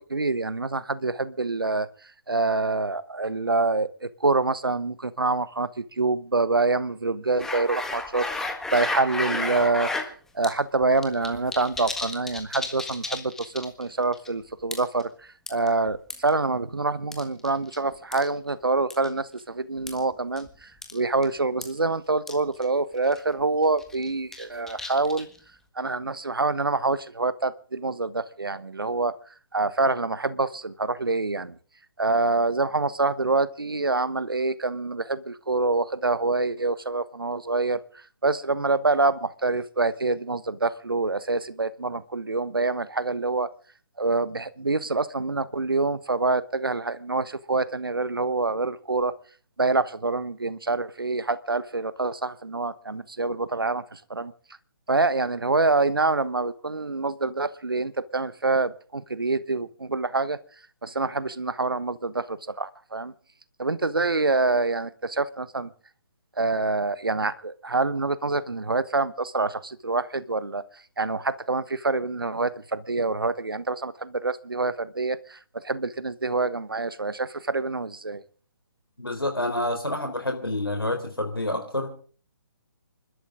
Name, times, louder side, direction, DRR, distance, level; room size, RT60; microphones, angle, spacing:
voice 1, 0.0-9.9 10.3-25.3 25.7-29.1 29.5-31.6 32.0-43.5 44.0-49.1 49.6-54.3 54.9-60.4 60.8-63.1 63.6-65.7 66.4-78.2, right 3 dB, 75° right, 15 dB, 1.2 m, -26 dB
sound 1, 7.4-10.1 10.4-10.5 10.8-13.8 14.1-14.3 14.7-15.0 15.5-16.3 17.1-17.8 18.1-18.3 18.9-19.1 19.9-20.0 20.4-20.5 20.8-21.0 21.2-21.3 21.6-21.7 22.3-22.4 22.6-22.7 23.1-23.3 23.8-25.4, left 3 dB, 5° left, 1.6 m, -32 dB
voice 2, 79.0-81.9, left 1 dB, 85° left, 4 dB, 4.0 m, -28 dB
28.5 x 12.5 x 3.8 m, 0.43 s
figure-of-eight pair, 140°, 12 cm